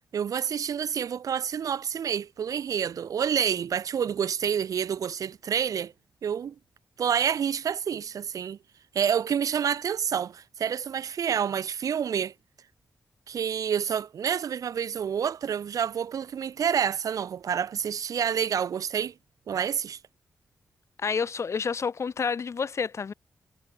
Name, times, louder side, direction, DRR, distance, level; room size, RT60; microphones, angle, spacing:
voice 1, 0.1-5.9 6.2-6.5 7.0-8.6 8.9-12.3 13.3-19.1 19.5-20.0, right 8 dB, 70° right, 0.9 m, -28 dB
voice 2, 21.0-23.1, left 5 dB, 50° left, 0.8 m, -29 dB
cardioid pair, 65°, 6 cm